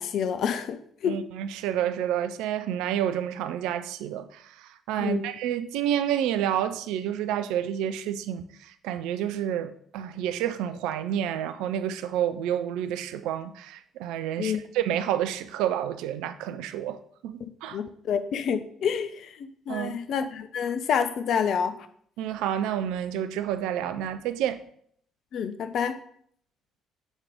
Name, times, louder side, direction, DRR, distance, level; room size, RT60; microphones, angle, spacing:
voice 1, 0.0-1.2 5.0-5.3 14.4-14.6 17.4-21.8 25.3-26.0, left 7 dB, 55° left, 0.5 m, -28 dB
voice 2, 1.0-17.8 19.7-19.9 22.2-24.6, right 10 dB, 65° right, 0.4 m, -29 dB
7.3 x 4.8 x 3.5 m
figure-of-eight pair, 45°, 0 cm